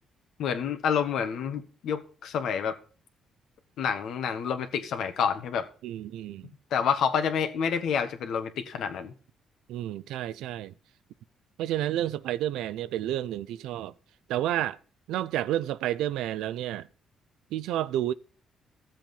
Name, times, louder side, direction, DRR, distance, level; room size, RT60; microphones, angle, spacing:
voice 1, 0.4-2.7 3.8-5.6 6.7-9.1, left 7 dB, 75° left, 1.5 m, -28 dB
voice 2, 5.8-6.5 9.7-10.7 11.6-13.9 14.3-14.8 15.1-16.9 17.5-18.1, right 12 dB, 90° right, 0.5 m, -30 dB
14.0 x 7.6 x 5.4 m
cardioid pair, 90°, 0 cm